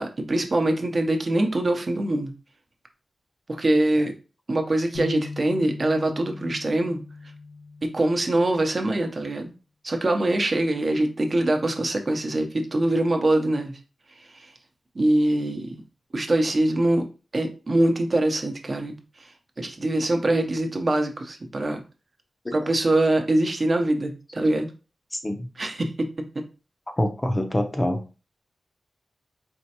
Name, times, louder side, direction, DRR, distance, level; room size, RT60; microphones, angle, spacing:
voice 1, 0.0-2.3 3.5-4.1 4.5-7.0 7.8-9.5 9.8-13.8 14.3-14.5 14.9-15.7 16.1-17.1 17.3-19.3 19.6-21.8 22.5-24.7 25.6-26.1 26.3-26.4, right 1 dB, 40° right, 4 dB, 0.8 m, -23 dB
sound 1, 4.9-9.0, left 4 dB, 85° left, 1.3 m, -39 dB
voice 2, 25.1-25.5 27.0-28.0, left 1 dB, 20° left, 5 dB, 0.5 m, -25 dB
4.5 x 3.1 x 2.9 m, 0.32 s
wide cardioid pair, 125°, 0 cm